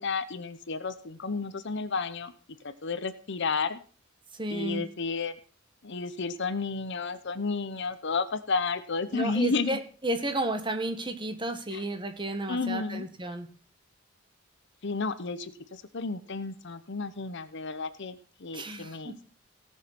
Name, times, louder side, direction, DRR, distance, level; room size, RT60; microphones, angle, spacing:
voice 1, 0.0-2.3 2.6-3.8 4.5-5.4 5.8-9.8 11.7-11.8 12.5-13.0 14.8-19.1, left 4 dB, 60° left, 12 dB, 0.9 m, -32 dB
voice 2, 4.4-4.8 9.1-13.5 18.5-19.1, right 1 dB, 25° right, 7 dB, 1.7 m, -32 dB
18.0 x 6.6 x 6.0 m, 0.40 s
head